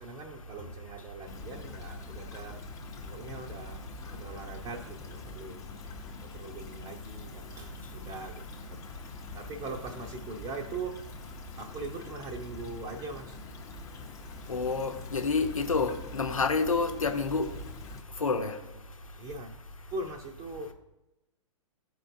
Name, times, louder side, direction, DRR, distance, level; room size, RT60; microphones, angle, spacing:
voice 1, 0.0-2.6 3.0-3.8 4.1-5.6 6.2-8.4 8.7-8.8 9.3-11.0 11.6-13.4 19.2-19.5 19.9-20.7, right 3 dB, 25° right, 0.8 m, -41 dB
Stream / Trickle dribble, 1.3-18.0, left 4 dB, 20° left, 0.9 m, -45 dB
voice 2, 14.5-17.5 18.2-18.5, left 4 dB, 85° left, 1.0 m, -28 dB
13.5 x 4.7 x 2.7 m
figure-of-eight pair, 115°, 17 cm